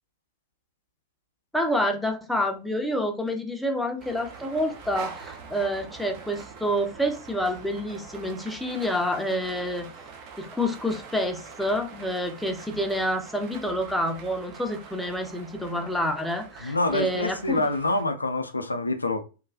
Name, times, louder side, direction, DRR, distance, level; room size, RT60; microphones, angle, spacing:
voice 1, 1.5-9.9 10.4-17.6, equal, 5° left, 0.5 m, -28 dB
sound 1, 4.0-18.0, right 5 dB, 40° right, 0.6 m, -44 dB
voice 2, 16.6-19.2, left 2 dB, 80° left, 0.3 m, -26 dB
3.0 x 2.2 x 2.5 m
figure-of-eight pair, 90°, 0 cm